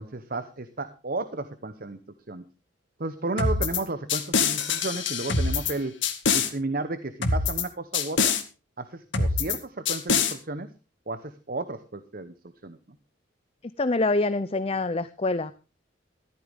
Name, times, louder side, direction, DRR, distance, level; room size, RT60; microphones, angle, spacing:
voice 1, 0.0-2.0 2.3-2.4 3.0-5.9 6.3-8.4 8.8-10.7 11.1-12.3 12.6-12.8, right 2 dB, 50° right, 10 dB, 1.0 m, -33 dB
sound 1, 3.4-3.8 4.1-5.7 6.0-6.5 7.2-7.6 7.9-8.4 9.1-9.6 9.9-10.3, left 5 dB, 70° left, 2.0 m, -24 dB
voice 2, 13.6-15.5, left 2 dB, 30° left, 14 dB, 0.6 m, -26 dB
14.5 x 13.0 x 3.6 m, 0.32 s
head